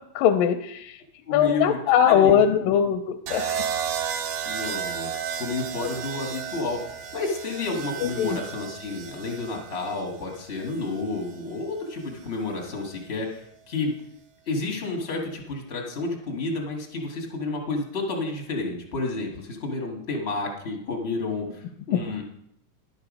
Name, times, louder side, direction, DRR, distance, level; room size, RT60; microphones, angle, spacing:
voice 1, 0.2-1.0 1.3-3.6 8.2-8.4 21.9-22.0, left 9 dB, 85° left, 6 dB, 2.2 m, -20 dB
voice 2, 1.3-2.7 4.4-6.8 7.1-13.9 14.5-22.2, left 3 dB, 55° left, 0 dB, 0.6 m, -30 dB
sound 1, 3.3-11.4 12.6-13.0, right 8 dB, 70° right, 1.7 m, -33 dB
11.0 x 7.9 x 5.2 m, 0.72 s
omnidirectional pair, 4.0 m